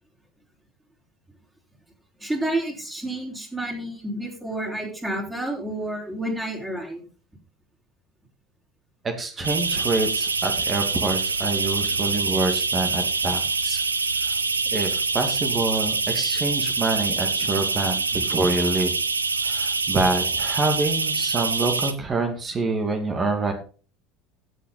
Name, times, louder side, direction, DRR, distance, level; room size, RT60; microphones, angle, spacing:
voice 1, 2.2-7.0, right 1 dB, 15° right, -1 dB, 4.4 m, -30 dB
voice 2, 9.0-13.8 14.2-14.4 14.7-18.9 19.4-23.5, right 3 dB, 30° right, 5 dB, 2.3 m, -26 dB
sound 1, 9.4-21.9, right 4 dB, 85° right, 0.7 m, -25 dB
15.0 x 6.4 x 4.0 m, 0.37 s
figure-of-eight pair, 65°, 0 cm